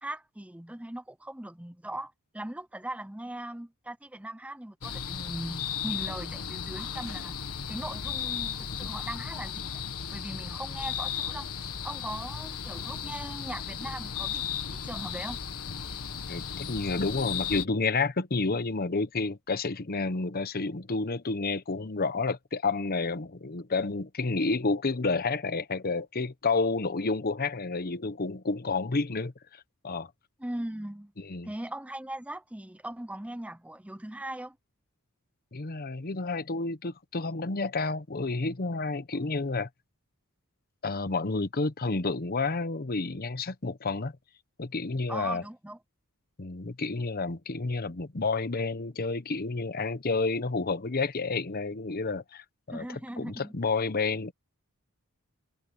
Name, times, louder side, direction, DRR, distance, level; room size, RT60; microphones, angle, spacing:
voice 1, 0.0-7.4 7.7-9.8 10.1-11.5 11.8-15.4 30.4-31.1 31.4-34.6 45.1-45.8 52.7-53.6, right 1 dB, 5° right, 0.7 m, -39 dB
sound 1, 4.8-17.6, left 7 dB, 75° left, 1.5 m, -35 dB
voice 2, 16.3-29.3 29.8-30.1 31.3-31.5 35.5-39.7 40.8-44.1 44.6-45.4 46.4-52.8 53.2-54.3, left 3 dB, 40° left, 0.9 m, -30 dB
head